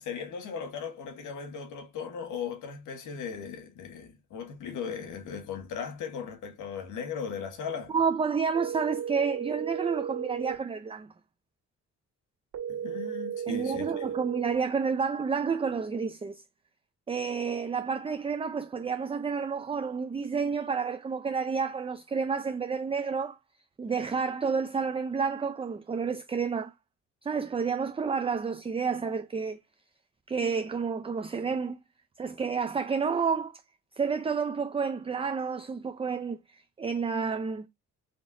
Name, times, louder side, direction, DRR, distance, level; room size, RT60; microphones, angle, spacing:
voice 1, 0.0-7.9 12.7-14.1, left 6 dB, 80° left, 1.5 m, -37 dB
voice 2, 7.9-11.1 13.5-16.4 17.1-23.4 23.8-26.7 27.2-29.6 30.3-31.8 32.2-33.6 34.0-37.7, right 5 dB, 20° right, 0.5 m, -30 dB
sound 1, 8.5-10.6 12.5-14.6, right 8 dB, 70° right, 1.7 m, -34 dB
6.3 x 3.0 x 2.6 m
cardioid pair, 90°, 30 cm